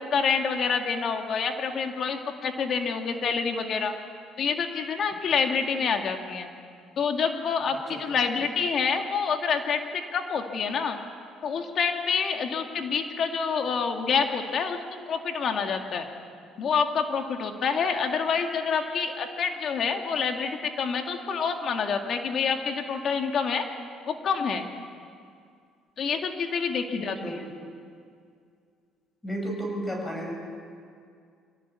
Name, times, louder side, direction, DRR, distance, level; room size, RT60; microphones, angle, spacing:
voice 1, 0.0-3.9 4.4-6.5 7.0-11.0 11.4-14.8 15.1-16.1 16.6-23.7 24.1-24.7 26.0-27.4, left 5 dB, 55° left, 4 dB, 2.2 m, -27 dB
voice 2, 26.9-27.6 29.2-30.3, right 1 dB, 15° left, 1 dB, 6.7 m, -33 dB
23.5 x 17.5 x 8.4 m, 2.2 s
cardioid pair, 95°, 0 cm